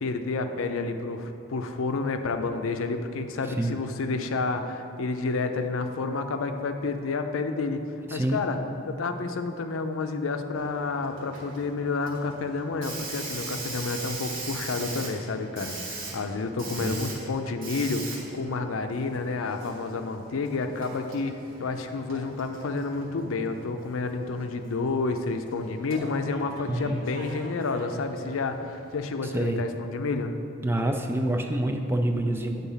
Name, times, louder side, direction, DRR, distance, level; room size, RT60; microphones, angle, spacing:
voice 1, 0.0-7.8 8.1-8.6 8.9-30.3, left 3 dB, 90° left, 7 dB, 0.5 m, -30 dB
voice 2, 8.1-8.4 16.8-17.0 26.7-27.0 29.2-29.6 30.6-32.7, right 1 dB, 10° right, 4 dB, 0.4 m, -27 dB
Hiss, 10.6-29.0, right 3 dB, 75° right, 1.6 m, -41 dB
8.3 x 3.9 x 5.6 m, 2.8 s
head